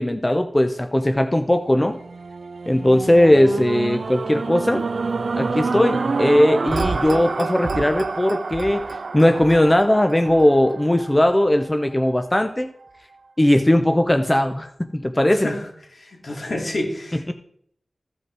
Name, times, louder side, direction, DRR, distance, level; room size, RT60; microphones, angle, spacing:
voice 1, 0.0-2.0 2.7-4.8 5.4-12.7 13.4-15.5 17.3-17.4, left 1 dB, 20° left, 7 dB, 0.7 m, -18 dB
sound 1, 1.6-11.9 12.5-12.6, right 4 dB, 85° right, 0.4 m, -28 dB
voice 2, 15.9-17.3, left 1 dB, 70° left, 0 dB, 2.6 m, -29 dB
14.5 x 5.3 x 4.7 m, 0.66 s
wide cardioid pair, 65°, 0 cm